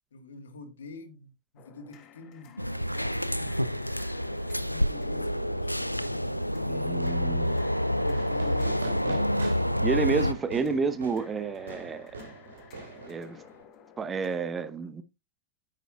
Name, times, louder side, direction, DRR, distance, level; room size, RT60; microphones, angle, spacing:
voice 1, 0.1-4.1 4.7-6.8 8.0-9.8, left 3 dB, 65° left, 1.5 m, -46 dB
sound 1, 1.6-14.5, left 8 dB, 35° left, 1.6 m, -54 dB
sound 2, 2.6-10.3, equal, 90° left, 0.4 m, -28 dB
voice 2, 6.7-7.6 9.8-12.2 13.0-13.4 14.0-15.0, right 5 dB, 20° right, 0.9 m, -30 dB
Fireworks, 8.1-13.6, right 4 dB, 70° right, 2.6 m, -43 dB
9.6 x 9.4 x 2.3 m
figure-of-eight pair, 90°, 0 cm